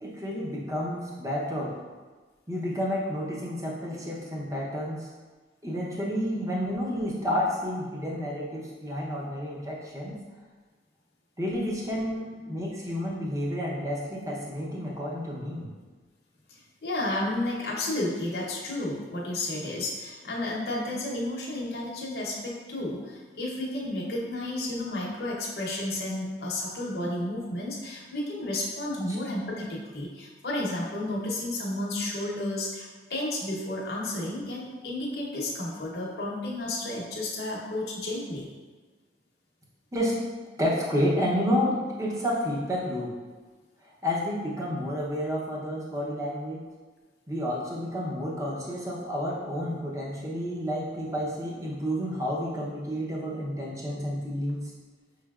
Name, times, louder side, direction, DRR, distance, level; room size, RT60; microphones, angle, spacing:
voice 1, 0.0-1.7 2.5-5.1 5.6-10.2 11.4-15.7 29.1-29.2 39.9-40.2 40.6-43.2 43.8-46.6 47.3-54.7, equal, 15° right, -4 dB, 0.7 m, -30 dB
voice 2, 16.5-38.5, left 1 dB, 55° left, -3 dB, 0.8 m, -32 dB
5.6 x 3.2 x 2.4 m, 1.3 s
head